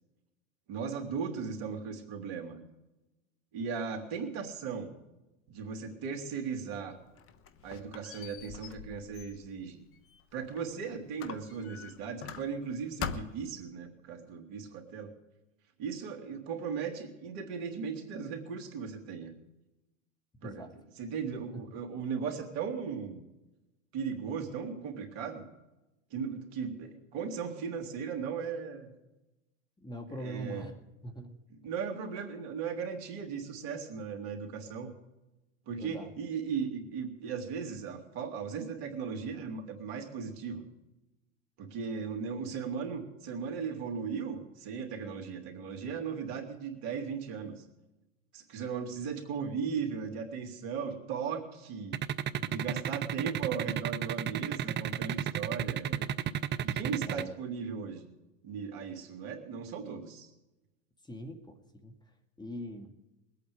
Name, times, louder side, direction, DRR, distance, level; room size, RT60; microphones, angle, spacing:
voice 1, 0.7-2.6 3.5-4.9 5.5-7.0 7.6-9.8 10.3-15.1 15.8-19.3 20.4-20.6 21.0-23.2 23.9-25.4 26.1-28.9 30.2-30.7 31.6-34.9 35.7-40.7 41.6-47.6 48.3-52.0 52.5-56.1 56.6-58.1 58.4-60.3, right 6 dB, 60° right, 4 dB, 2.9 m, -37 dB
Squeak, 6.9-10.7 11.2-12.7 13.0-13.6, left 7 dB, 35° left, 1.2 m, -43 dB
voice 2, 29.8-30.8 31.0-31.4 35.8-36.1 52.4-52.8 57.0-57.4 61.0-63.2, equal, 10° left, 5 dB, 1.9 m, -43 dB
sound 1, 51.9-57.2, right 10 dB, 30° right, 0.5 m, -32 dB
22.0 x 8.7 x 5.1 m, 0.99 s
hypercardioid pair, 100°, 38 cm